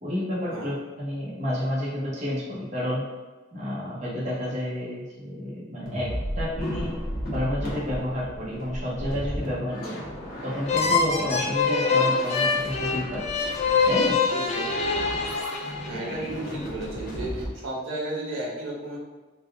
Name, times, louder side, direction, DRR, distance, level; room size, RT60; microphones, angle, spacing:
voice 1, 0.0-3.0 3.5-6.1 6.4-6.9 7.3-10.0 10.4-13.2 13.8-14.2, left 1 dB, 35° right, -7 dB, 1.1 m, -30 dB
sound 1, 5.9-17.5, equal, 50° left, 1.0 m, -35 dB
sound 2, 10.7-16.2, left 4 dB, 35° left, 0.4 m, -24 dB
voice 2, 14.3-15.1 15.8-19.0, right 1 dB, 80° right, -4 dB, 0.9 m, -34 dB
3.9 x 2.2 x 3.5 m, 1.3 s
head